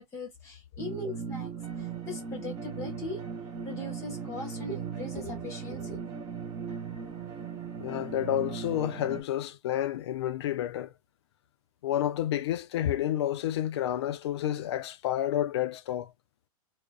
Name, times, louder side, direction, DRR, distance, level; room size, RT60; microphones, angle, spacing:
voice 1, 0.0-1.5 2.1-3.2 3.6-6.0, left 2 dB, 15° left, 0.9 m, -39 dB
sound 1, 0.8-9.2, right 6 dB, 15° right, 0.4 m, -38 dB
voice 2, 7.8-10.9 11.8-16.1, left 12 dB, 45° left, 0.4 m, -30 dB
2.4 x 2.1 x 2.3 m
hypercardioid pair, 155°, 19 cm